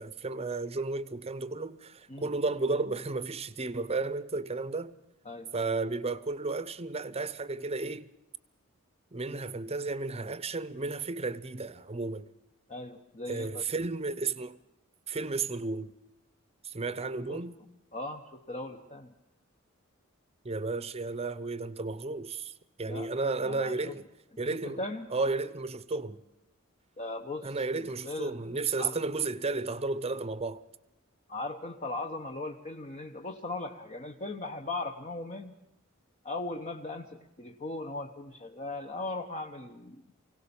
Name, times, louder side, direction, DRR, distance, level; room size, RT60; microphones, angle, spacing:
voice 1, 0.0-5.0 5.5-8.1 9.1-12.3 13.3-14.6 15.1-15.9 16.6-17.6 20.4-22.5 22.8-24.1 24.4-24.8 25.1-26.2 27.4-30.6, right 3 dB, 30° right, 0.8 m, -33 dB
voice 2, 12.7-13.6 17.3-17.4 17.9-19.1 22.8-23.1 23.4-23.9 24.4-25.1 27.0-28.4 28.8-29.0 31.3-35.5 36.2-40.0, left 2 dB, 35° left, 1.1 m, -38 dB
23.0 x 17.5 x 7.0 m
head